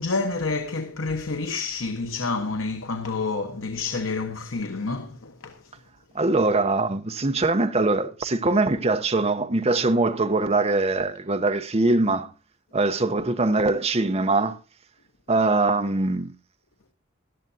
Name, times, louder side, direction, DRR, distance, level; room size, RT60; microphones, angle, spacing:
voice 1, 0.0-5.6, left 3 dB, 70° left, 1.2 m, -29 dB
voice 2, 6.1-12.3 12.7-14.6 15.3-16.3, right 2 dB, 30° right, 0.8 m, -22 dB
18.0 x 12.0 x 2.7 m
head